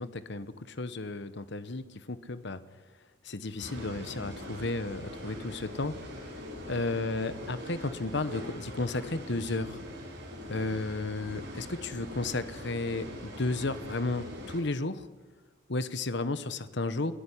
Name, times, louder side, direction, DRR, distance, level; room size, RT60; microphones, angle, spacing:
voice 1, 0.0-2.6 3.2-5.9 6.7-9.8 10.5-15.1 15.7-17.1, left 2 dB, 60° left, 13 dB, 1.2 m, -33 dB
sound 1, 3.6-14.6, left 1 dB, 55° right, 8.0 m, -42 dB
29.5 x 10.5 x 10.0 m, 1.2 s
head